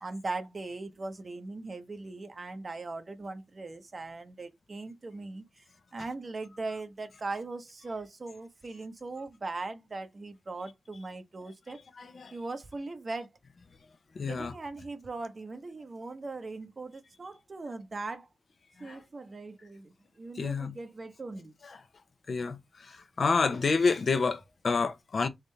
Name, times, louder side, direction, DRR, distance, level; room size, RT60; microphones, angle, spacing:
voice 1, 0.0-5.6 5.9-11.8 12.3-13.3 14.3-18.3 18.8-21.5, right 3 dB, 40° right, 1.0 m, -39 dB
voice 2, 12.0-12.3 14.2-14.5 18.8-19.0 20.4-20.7 22.3-22.6 23.2-25.3, left 4 dB, 60° left, 0.9 m, -28 dB
3.9 x 3.7 x 3.3 m
wide cardioid pair, 85°, 0 cm